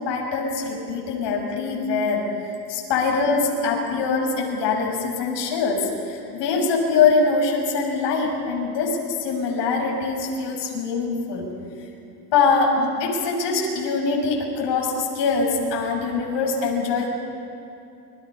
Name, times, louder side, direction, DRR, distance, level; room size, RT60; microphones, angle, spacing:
voice 1, 0.0-11.5 12.3-17.1, left 4 dB, 60° left, 0 dB, 6.8 m, -23 dB
29.0 x 23.0 x 5.7 m, 2.7 s
supercardioid pair, 105°, 48 cm